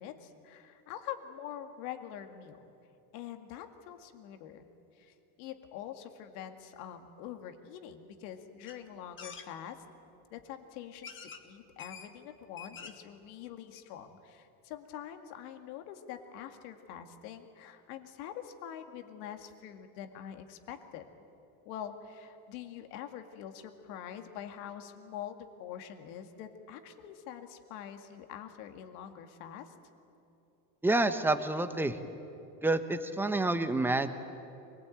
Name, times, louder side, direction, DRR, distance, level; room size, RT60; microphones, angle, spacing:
voice 1, 0.0-2.7 3.1-4.7 4.9-9.8 10.3-21.1 21.7-29.7, left 9 dB, 80° left, 7 dB, 2.2 m, -45 dB
sound 1, 8.7-8.8 9.2-9.5 10.4-10.5 11.0-11.4 11.8-12.1 12.4-13.1 13.5-13.6 13.8-13.9, left 6 dB, 25° left, 1.4 m, -46 dB
voice 2, 30.8-32.0 32.6-34.1, right 2 dB, 5° right, 8 dB, 1.1 m, -28 dB
24.0 x 20.5 x 9.2 m, 2.8 s
cardioid pair, 140°, 45 cm